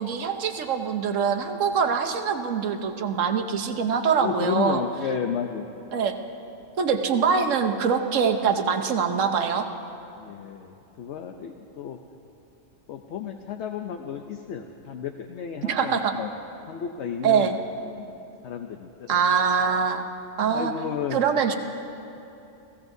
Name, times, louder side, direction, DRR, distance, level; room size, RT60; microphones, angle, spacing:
voice 1, 0.0-4.8 5.9-6.2 6.8-9.7 15.7-16.1 17.2-17.6 19.1-20.1 20.4-20.7 21.1-21.5, right 6 dB, 80° right, 6 dB, 1.2 m, -23 dB
voice 2, 4.2-5.8 10.2-12.0 12.9-16.3 16.7-17.5 17.8-18.2 18.4-19.2 20.5-21.2, left 7 dB, 65° left, 4 dB, 0.9 m, -32 dB
30.0 x 16.0 x 2.7 m, 2.8 s
omnidirectional pair, 1.3 m